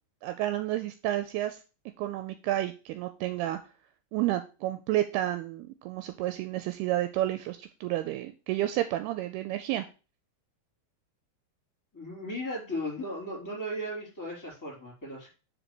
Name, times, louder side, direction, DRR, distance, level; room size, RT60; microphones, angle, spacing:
voice 1, 0.2-1.6 2.0-3.6 4.1-9.9, right 14 dB, 85° right, 8 dB, 2.4 m, -30 dB
voice 2, 11.9-15.3, equal, 5° left, -2 dB, 2.5 m, -36 dB
5.2 x 4.5 x 6.0 m, 0.33 s
omnidirectional pair, 4.8 m